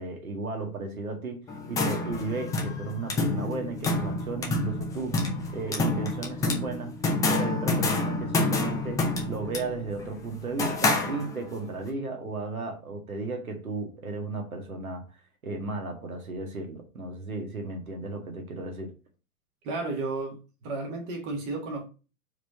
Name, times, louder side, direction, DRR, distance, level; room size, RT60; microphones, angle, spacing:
voice 1, 0.0-7.0 7.3-15.0 15.4-18.9, right 3 dB, 70° right, 1.8 m, -35 dB
sound 1, 1.5-11.6, left 2 dB, 10° left, 0.6 m, -28 dB
voice 2, 19.6-21.9, right 3 dB, 35° right, 1.6 m, -33 dB
4.7 x 3.7 x 5.6 m
figure-of-eight pair, 105°, 45 cm